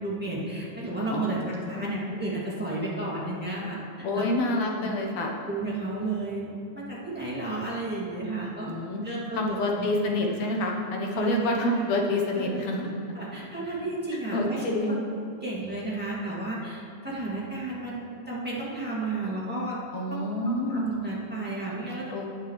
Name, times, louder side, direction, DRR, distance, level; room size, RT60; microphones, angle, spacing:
voice 1, 0.0-1.4 1.7-3.8 4.1-4.3 4.5-5.0 5.5-6.5 6.7-8.7 9.0-9.9 10.3-10.4 11.1-11.5 13.1-15.0 15.4-19.8 20.1-20.3 20.7-22.2, right 2 dB, 5° right, -7 dB, 1.6 m, -32 dB
voice 2, 1.1-1.9 4.0-5.3 8.6-9.0 9.3-12.9 14.1-15.0 19.9-20.9 22.1-22.3, left 1 dB, 70° left, 0 dB, 2.1 m, -28 dB
18.0 x 6.6 x 3.2 m, 2.7 s
omnidirectional pair, 3.3 m